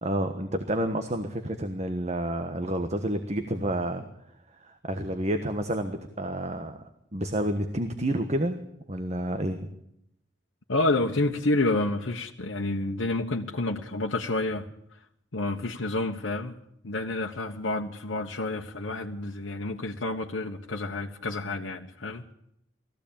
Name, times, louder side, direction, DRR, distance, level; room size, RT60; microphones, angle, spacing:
voice 1, 0.0-4.0 4.6-6.8 7.1-8.6 8.9-9.7, right 1 dB, 35° right, 7 dB, 1.3 m, -29 dB
voice 2, 10.7-14.7 15.3-16.6 16.8-22.3, left 2 dB, 90° left, 0 dB, 1.2 m, -29 dB
20.0 x 15.5 x 8.8 m, 0.78 s
head